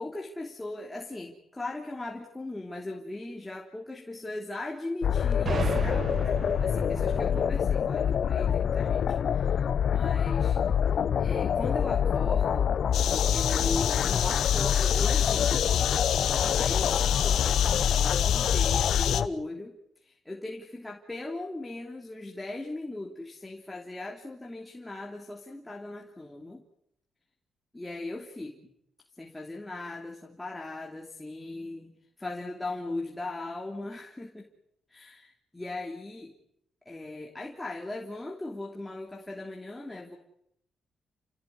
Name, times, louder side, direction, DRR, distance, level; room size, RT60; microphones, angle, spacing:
voice 1, 0.0-6.2 6.6-9.6 9.9-10.6 11.2-12.7 13.3-16.1 16.6-26.6 27.7-28.6 29.2-34.5 34.9-36.3 36.8-40.2, left 2 dB, 10° left, 1 dB, 3.1 m, -38 dB
sound 1, 5.0-19.3, left 8 dB, 55° left, 0.9 m, -26 dB
sound 2, 5.5-9.1, right 6 dB, 40° right, 1.0 m, -36 dB
sound 3, 12.9-19.2, left 11 dB, 80° left, 1.8 m, -30 dB
30.0 x 16.5 x 9.7 m, 0.77 s
cardioid pair, 125°, 0 cm